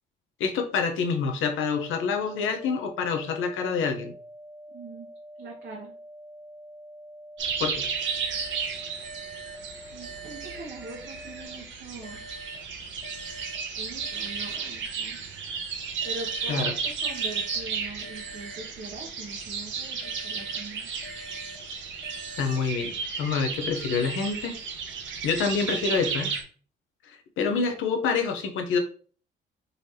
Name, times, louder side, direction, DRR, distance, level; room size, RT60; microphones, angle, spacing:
voice 1, 0.4-4.1 7.6-7.9 16.5-16.7 22.4-22.9 23.2-24.5 25.2-26.3 27.1-28.8, left 5 dB, 80° left, 5 dB, 0.8 m, -27 dB
sound 1, 1.6-11.6, equal, 15° right, 1.2 m, -46 dB
voice 2, 4.7-5.1 5.4-5.9 9.9-12.2 13.7-15.2 16.0-20.9, right 3 dB, 55° right, -3 dB, 1.2 m, -42 dB
sound 2, 7.4-26.4, right 5 dB, 70° right, 1.0 m, -34 dB
sound 3, 8.0-11.4 12.0-15.3 16.0-19.4 20.0-23.3, right 1 dB, 55° left, 1.3 m, -46 dB
4.0 x 3.2 x 2.8 m, 0.42 s
cardioid pair, 90°, 20 cm